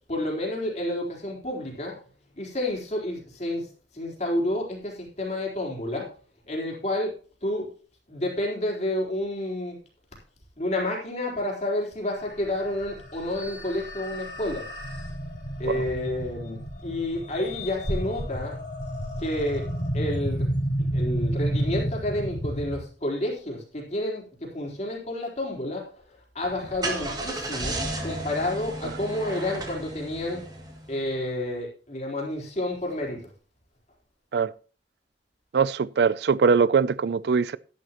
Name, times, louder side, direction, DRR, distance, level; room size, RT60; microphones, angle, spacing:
voice 1, 0.1-2.0 2.4-3.7 3.9-6.1 6.5-7.1 7.4-7.7 8.1-9.8 10.6-14.7 15.6-18.6 19.2-19.7 19.9-20.5 20.9-30.4 30.9-33.3, left 1 dB, 40° left, 4.0 m, -30 dB
sound 1, 12.2-22.8, equal, 70° left, 3.9 m, -31 dB
Car / Engine starting, 26.4-31.1, right 1 dB, 25° right, 2.3 m, -34 dB
voice 2, 35.5-37.6, right 5 dB, 65° right, 0.4 m, -22 dB
12.0 x 11.5 x 3.0 m
head